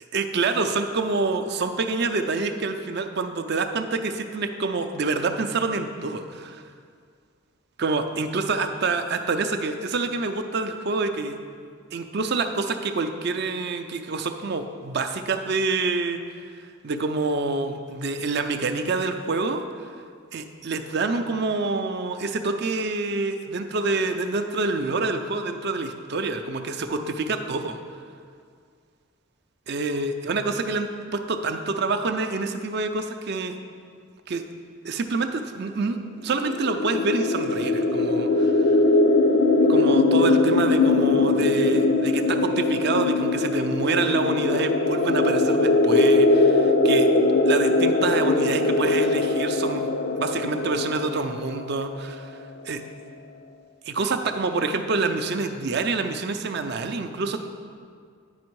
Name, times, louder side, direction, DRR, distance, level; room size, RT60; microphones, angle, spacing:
voice 1, 0.0-6.6 7.8-11.4 11.9-16.2 16.6-19.6 20.3-27.8 29.7-33.6 34.3-34.4 34.8-38.8 39.7-47.1 47.5-49.9 50.2-52.3 52.6-52.8 53.8-57.4, right 3 dB, 50° right, 7 dB, 0.5 m, -27 dB
sound 1, 36.4-52.0, left 2 dB, 45° left, 0.4 m, -21 dB
9.5 x 5.1 x 4.6 m, 2.1 s
head